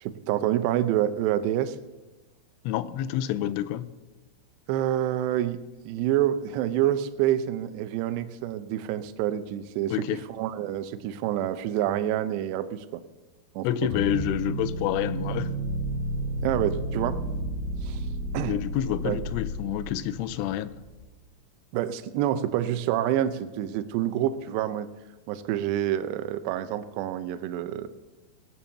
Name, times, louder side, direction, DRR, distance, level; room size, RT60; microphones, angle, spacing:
voice 1, 0.0-1.8 4.7-5.6 5.9-10.0 10.3-13.0 13.6-13.9 16.4-17.2 17.8-18.0 18.3-18.6 19.1-19.2 21.7-24.9 25.3-27.9, right 12 dB, 85° right, 10 dB, 2.4 m, -27 dB
voice 2, 2.6-3.9 9.9-10.2 13.6-15.5 18.4-20.7, left 12 dB, 85° left, 13 dB, 3.0 m, -28 dB
sound 1, 13.8-21.0, right 1 dB, 65° left, 5.2 m, -32 dB
19.0 x 7.1 x 7.1 m, 1.1 s
omnidirectional pair, 5.8 m